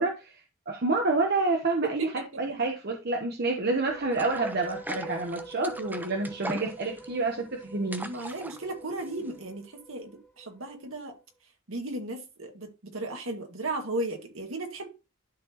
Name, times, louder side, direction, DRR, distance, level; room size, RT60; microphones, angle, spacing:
voice 1, 0.0-8.1, right 3 dB, 50° right, 1.1 m, -28 dB
sound 1, 3.7-10.9, right 3 dB, 5° left, 1.4 m, -45 dB
sound 2, 4.1-9.4, right 1 dB, 10° right, 0.7 m, -40 dB
voice 2, 8.0-11.2 11.7-14.9, right 2 dB, 70° right, 2.1 m, -35 dB
12.0 x 4.2 x 3.0 m
head